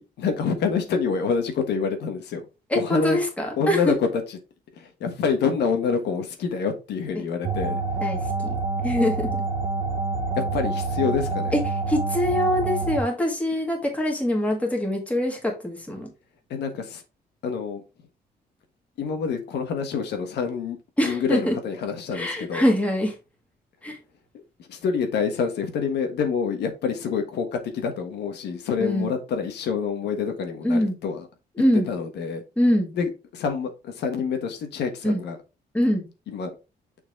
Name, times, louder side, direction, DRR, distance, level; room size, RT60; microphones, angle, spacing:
voice 1, 0.0-2.4 2.7-3.2 3.6-4.4 4.8-7.8 10.3-11.5 16.5-17.0 17.4-17.8 19.0-20.8 21.0-22.6 24.6-31.3 31.9-32.4 32.9-35.4 36.3-36.5, left 6 dB, 80° left, 1.4 m, -27 dB
voice 2, 2.7-4.0 7.2-7.3 8.0-9.3 11.5-11.6 11.9-16.1 21.0-21.6 22.1-23.1 23.8-24.0 28.8-29.1 30.6-31.0 31.6-31.9 32.6-32.9 35.0-35.2 35.7-36.1, equal, 10° left, 1.9 m, -24 dB
sound 1, 7.4-13.0, right 3 dB, 30° right, 1.2 m, -27 dB
6.4 x 4.6 x 3.5 m
cardioid pair, 150°, 17 cm